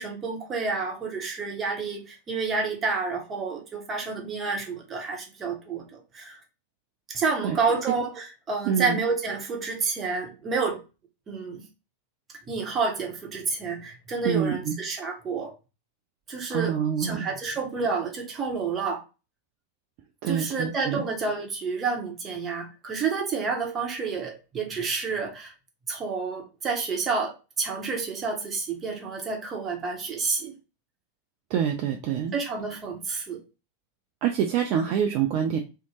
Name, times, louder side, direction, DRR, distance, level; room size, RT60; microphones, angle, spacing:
voice 1, 0.0-6.4 7.1-10.8 11.3-11.7 12.5-15.5 16.3-19.0 20.3-25.5 25.9-30.5 32.3-33.4, right 4 dB, 20° right, 1 dB, 0.8 m, -29 dB
voice 2, 8.7-9.0 14.2-14.8 16.5-17.3 20.2-21.0 31.5-32.3 34.2-35.6, right 8 dB, 45° right, 4 dB, 0.3 m, -26 dB
2.6 x 2.0 x 3.0 m, 0.30 s
figure-of-eight pair, 90°, 0 cm